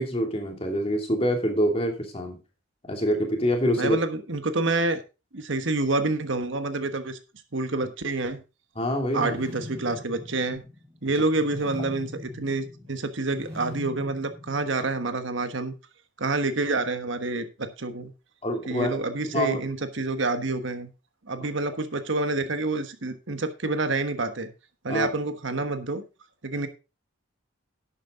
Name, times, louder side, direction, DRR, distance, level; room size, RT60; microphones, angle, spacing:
voice 1, 0.0-2.4 2.9-4.0 8.8-9.3 18.4-18.9 19.3-19.6 24.9-25.1, equal, 30° left, 2.6 m, -25 dB
voice 2, 3.8-5.0 5.3-7.2 7.5-8.4 9.1-10.6 11.0-15.7 16.2-18.1 18.7-20.9 21.2-24.5 24.8-26.0 26.4-26.7, right 2 dB, 65° right, 1.3 m, -28 dB
sound 1, 9.0-15.1, left 1 dB, 15° right, 3.7 m, -42 dB
11.5 x 8.3 x 3.8 m
head